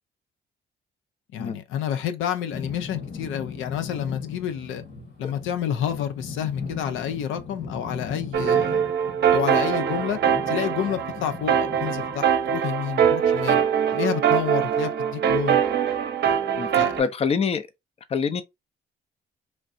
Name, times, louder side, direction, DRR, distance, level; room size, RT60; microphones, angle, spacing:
voice 1, 1.3-4.8 5.2-8.8 9.3-10.2 10.5-13.6 13.9-15.6 16.7-17.0, left 9 dB, 85° left, 0.5 m, -29 dB
sound 1, 2.5-12.6, left 5 dB, 55° left, 1.5 m, -38 dB
sound 2, 8.3-17.0, right 8 dB, 60° right, 0.6 m, -23 dB
voice 2, 16.6-17.7 18.1-18.4, left 6 dB, 30° left, 0.4 m, -25 dB
3.2 x 2.4 x 2.5 m
cardioid pair, 90°, 20 cm